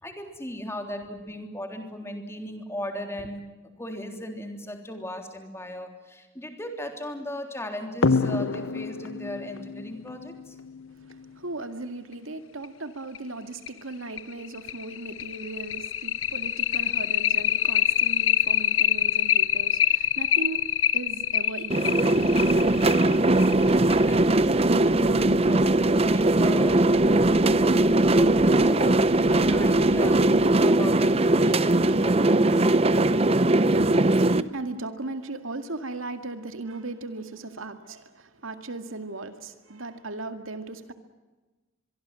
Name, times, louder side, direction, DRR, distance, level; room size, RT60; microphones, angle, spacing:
voice 1, 0.0-3.4 3.8-10.6 24.0-32.7, left 1 dB, 15° left, 3.5 m, -37 dB
sound 1, 8.0-11.2 12.6-12.7 13.1-13.2 13.7-13.8 14.2-24.2, left 9 dB, 70° left, 0.9 m, -25 dB
voice 2, 11.0-23.1 24.3-24.4 33.6-40.9, right 2 dB, 85° right, 2.2 m, -37 dB
sound 2, 21.7-34.4, right 2 dB, 30° right, 0.8 m, -20 dB
sound 3, 22.1-30.5, equal, 50° left, 3.2 m, -46 dB
25.0 x 23.0 x 7.7 m
head